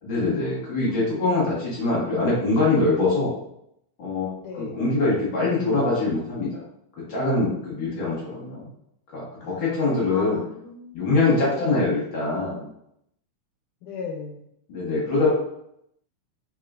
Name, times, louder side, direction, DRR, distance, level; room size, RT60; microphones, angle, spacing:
voice 1, 0.0-3.3 4.0-6.6 7.1-8.7 9.1-10.4 10.9-12.7 14.7-15.3, left 3 dB, 50° left, -6 dB, 1.6 m, -23 dB
voice 2, 4.4-4.8 9.4-11.0 11.4-11.8 13.8-14.4, left 4 dB, 80° left, -2 dB, 2.3 m, -37 dB
4.8 x 3.6 x 2.4 m, 0.76 s
omnidirectional pair, 3.6 m